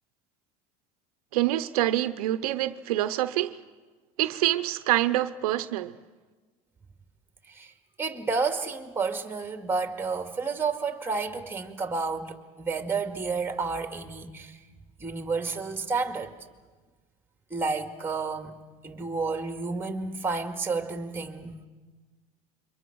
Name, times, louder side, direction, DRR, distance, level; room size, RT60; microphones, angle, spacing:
voice 1, 1.3-3.6 4.2-6.0, right 14 dB, 85° right, 0.8 m, -26 dB
voice 2, 8.0-14.6 15.0-16.3 17.5-18.5 18.8-21.7, right 4 dB, 10° right, 2.4 m, -30 dB
27.0 x 24.0 x 6.3 m
supercardioid pair, 100°, 18 cm